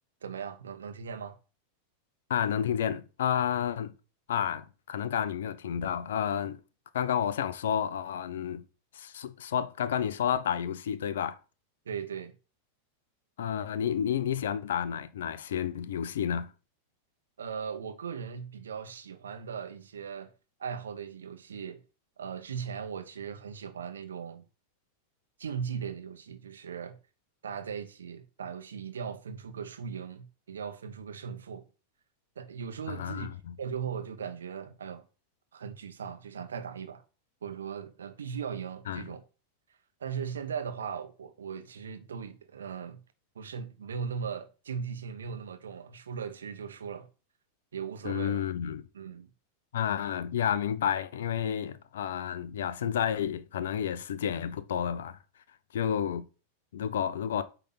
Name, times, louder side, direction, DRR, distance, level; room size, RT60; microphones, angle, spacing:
voice 1, 0.2-1.4 11.8-12.3 17.4-20.3 20.6-21.8 22.2-24.4 25.4-27.0 27.4-31.7 32.4-33.3 33.6-35.0 35.5-37.0 37.4-39.2 40.0-43.0 43.3-47.1 47.7-48.4 48.9-49.3, right 7 dB, 65° right, 1.1 m, -38 dB
voice 2, 2.3-3.9 4.3-6.6 6.9-8.6 8.9-11.4 13.4-16.5 32.9-33.5 38.9-39.0 48.0-48.9 49.7-55.2 55.7-56.3 56.7-57.4, left 9 dB, 60° left, 0.7 m, -30 dB
8.6 x 3.5 x 5.9 m
figure-of-eight pair, 90°, 0 cm